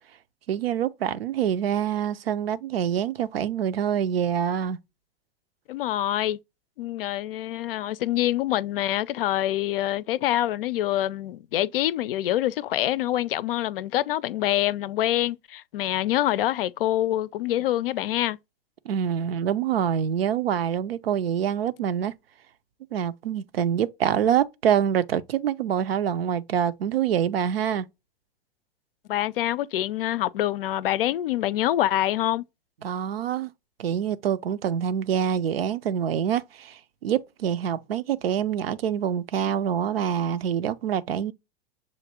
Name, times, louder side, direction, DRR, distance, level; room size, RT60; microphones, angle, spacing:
voice 1, 0.5-4.8 18.9-22.1 22.9-27.9 32.8-33.5 33.8-41.3, right 9 dB, 80° right, 0.5 m, -26 dB
voice 2, 5.7-6.4 6.8-18.4 29.1-32.4, left 13 dB, 70° left, 0.5 m, -25 dB
6.5 x 2.5 x 2.8 m
hypercardioid pair, 105°, 29 cm